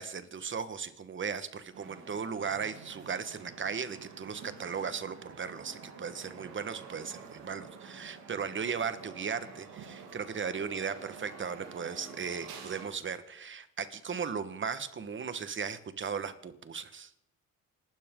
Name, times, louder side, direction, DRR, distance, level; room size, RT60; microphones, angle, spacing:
voice 1, 0.0-17.1, right 6 dB, 40° right, 12 dB, 1.4 m, -37 dB
sound 1, 1.7-12.9, right 6 dB, 90° right, 3.5 m, -49 dB
27.5 x 12.5 x 3.8 m, 0.75 s
cardioid pair, 90°, 30 cm